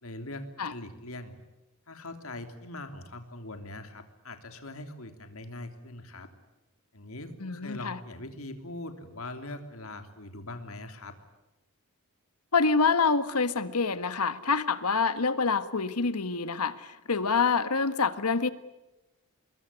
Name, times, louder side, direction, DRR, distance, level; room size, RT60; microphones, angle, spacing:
voice 1, 0.0-0.4 0.7-1.4 1.9-6.3 6.9-11.2, left 2 dB, 65° left, 7 dB, 3.1 m, -42 dB
voice 2, 7.4-8.0 12.5-18.5, left 4 dB, 90° left, 12 dB, 1.5 m, -26 dB
26.0 x 22.0 x 9.8 m, 1.0 s
head